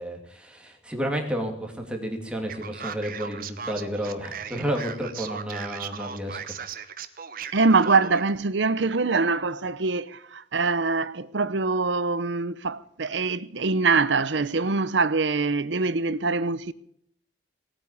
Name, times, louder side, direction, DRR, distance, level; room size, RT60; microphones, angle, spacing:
voice 1, 0.0-6.4, equal, 5° right, 2.6 m, -31 dB
Male speech man speaking, 2.5-8.3, right 6 dB, 50° right, 1.1 m, -37 dB
voice 2, 7.5-16.7, right 4 dB, 75° right, 0.8 m, -24 dB
18.5 x 9.1 x 8.3 m
head